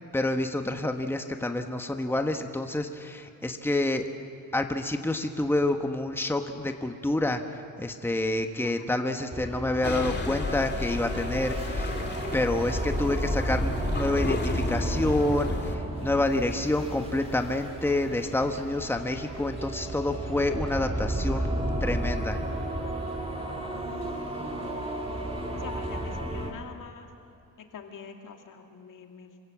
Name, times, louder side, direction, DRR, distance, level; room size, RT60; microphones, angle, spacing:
voice 1, 0.1-4.1 4.5-11.9 12.3-21.5 21.8-22.4, left 2 dB, 5° left, 5 dB, 1.3 m, -28 dB
sound 1, 9.3-26.5, right 1 dB, 20° right, 2.7 m, -33 dB
sound 2, 9.8-15.8, left 3 dB, 30° left, 2.2 m, -33 dB
sound 3, 10.7-26.2, right 3 dB, 50° right, 4.3 m, -45 dB
voice 2, 24.4-24.7 25.5-27.1 27.7-29.3, left 6 dB, 65° left, 3 dB, 2.5 m, -45 dB
27.0 x 16.5 x 7.5 m, 2.6 s
cardioid pair, 95°, 34 cm